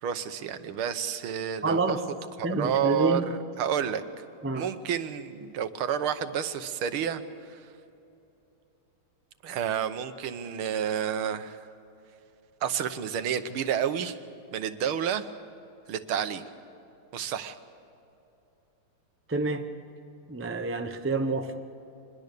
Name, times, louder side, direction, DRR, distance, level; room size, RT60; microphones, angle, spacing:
voice 1, 0.0-2.0 2.4-4.0 4.5-7.7 9.4-11.7 12.6-14.2 14.5-15.3 15.9-16.4 17.1-17.6, right 8 dB, 75° right, 10 dB, 1.9 m, -30 dB
voice 2, 1.6-2.0 2.4-3.3 4.4-4.7 19.3-19.7 20.3-21.5, right 3 dB, 20° right, 6 dB, 0.3 m, -28 dB
25.5 x 21.0 x 6.8 m, 2.8 s
omnidirectional pair, 2.4 m